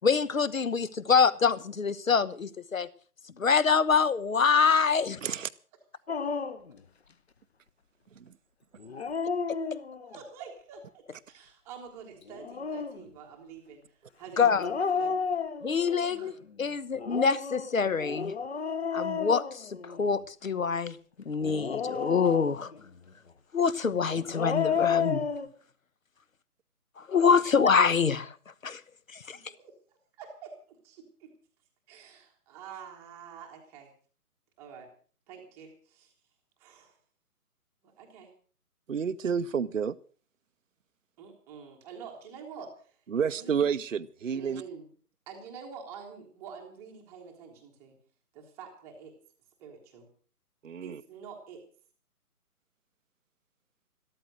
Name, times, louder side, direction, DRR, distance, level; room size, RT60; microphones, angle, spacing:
voice 1, 0.0-2.9 3.4-5.2 14.4-14.7 15.6-16.3 16.6-18.3 18.9-21.0 21.2-22.7 23.5-25.3 27.0-28.3 28.6-28.8 29.1-29.4, left 5 dB, 60° left, 1.2 m, -25 dB
Dog, 6.1-6.7 8.8-10.2 12.3-13.0 14.6-16.0 17.0-20.1 21.4-22.8 24.1-25.5, left 6 dB, 45° left, 1.3 m, -32 dB
voice 2, 10.0-15.4 16.1-16.4 29.4-31.3 31.9-33.9 34.6-34.9 35.3-36.1 36.6-37.0 37.8-38.3 41.2-43.0 43.4-43.6 44.3-44.9 45.3-48.0 48.3-49.1 49.6-50.1 50.8-51.6, right 6 dB, 5° right, 1.1 m, -47 dB
voice 3, 38.9-40.0 43.1-44.6 50.6-51.0, right 7 dB, 55° right, 0.7 m, -30 dB
13.5 x 13.5 x 6.3 m
figure-of-eight pair, 145°, 45 cm